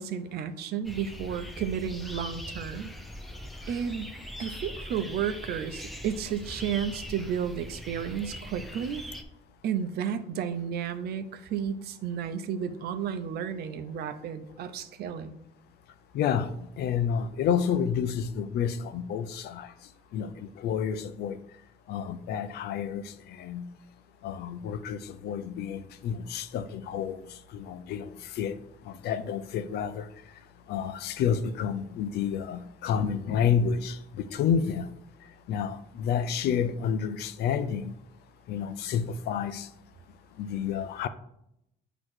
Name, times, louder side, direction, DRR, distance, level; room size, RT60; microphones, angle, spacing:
voice 1, 0.0-2.9 3.7-4.1 4.4-9.0 9.6-15.4, right 8 dB, 70° right, 0.7 m, -32 dB
sound 1, 0.8-9.2, equal, ahead, 0.7 m, -41 dB
voice 2, 16.1-16.5 16.8-19.7 20.1-21.4 21.9-23.0 23.4-23.7 24.2-27.2 27.5-28.1 28.4-28.6 29.0-30.0 30.7-34.8 35.5-37.9 38.5-39.7 40.4-41.1, left 7 dB, 70° left, 0.6 m, -29 dB
7.8 x 3.0 x 6.2 m
cardioid pair, 110°, 17 cm